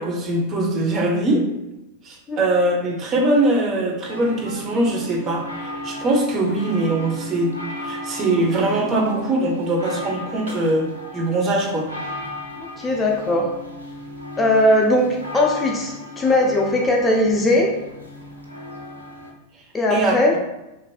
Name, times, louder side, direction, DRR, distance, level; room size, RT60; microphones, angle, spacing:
voice 1, 0.0-1.5 2.0-11.9 19.9-20.2, right 2 dB, 30° right, 0 dB, 0.7 m, -22 dB
sound 1, 4.0-19.3, left 1 dB, 85° left, 0.5 m, -35 dB
voice 2, 12.6-13.5 14.4-17.7 19.7-20.3, left 1 dB, 15° left, -1 dB, 0.4 m, -19 dB
3.2 x 2.5 x 2.3 m, 0.94 s
figure-of-eight pair, 90°, 0 cm